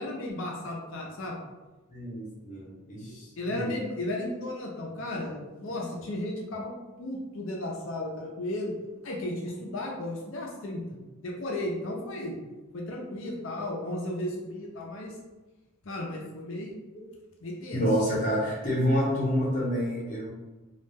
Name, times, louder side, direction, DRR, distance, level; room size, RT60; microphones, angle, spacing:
voice 1, 0.0-1.4 3.4-6.7 7.0-8.7 9.0-12.4 12.7-15.1 15.8-16.7 17.4-17.8, left 1 dB, 70° left, -2 dB, 0.5 m, -34 dB
voice 2, 1.9-3.7 17.7-20.3, equal, 40° left, -5 dB, 0.8 m, -28 dB
2.3 x 2.1 x 3.3 m, 1.2 s
head